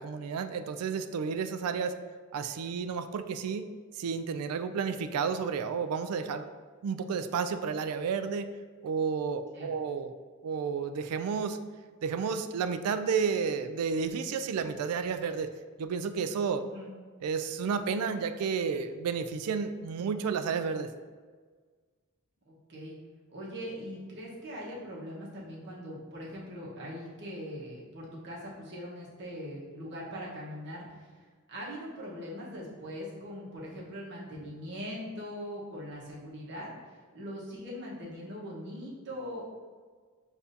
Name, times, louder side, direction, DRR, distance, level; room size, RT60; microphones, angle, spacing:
voice 1, 0.0-2.0 2.3-3.7 4.0-6.5 6.8-8.5 8.8-10.1 10.4-11.6 12.0-15.5 15.8-16.6 17.2-20.9, right 6 dB, 80° right, 10 dB, 0.3 m, -31 dB
voice 2, 23.3-31.1 31.5-36.7 37.1-39.4, equal, 55° right, -5 dB, 1.2 m, -41 dB
6.9 x 2.6 x 2.7 m, 1.5 s
head